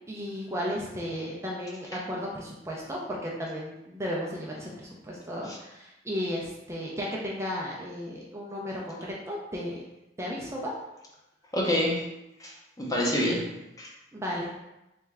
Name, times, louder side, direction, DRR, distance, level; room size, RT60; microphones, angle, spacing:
voice 1, 0.1-9.8 10.2-10.7 14.1-14.5, equal, 15° right, -3 dB, 0.5 m, -34 dB
voice 2, 11.5-12.1 12.4-13.5 13.8-13.9, left 1 dB, 20° left, -2 dB, 0.7 m, -27 dB
3.4 x 3.2 x 3.5 m, 0.94 s
head